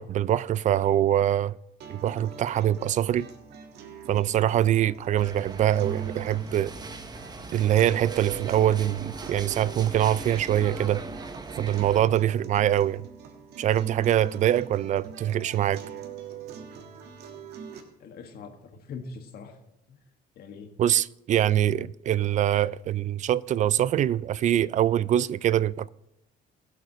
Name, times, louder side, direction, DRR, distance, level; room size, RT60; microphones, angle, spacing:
voice 1, 0.0-1.6 1.9-3.3 4.1-6.7 7.5-11.0 11.6-13.1 13.6-15.8 20.8-25.9, right 11 dB, 45° right, 0.4 m, -24 dB
sound 1, 1.8-17.8, right 5 dB, 75° right, 1.6 m, -43 dB
sound 2, 5.2-12.0, right 3 dB, 25° right, 1.2 m, -40 dB
voice 2, 18.0-19.6 19.9-20.0 20.4-20.7, left 5 dB, 65° left, 1.9 m, -42 dB
22.0 x 7.8 x 3.1 m
cardioid pair, 110°, 17 cm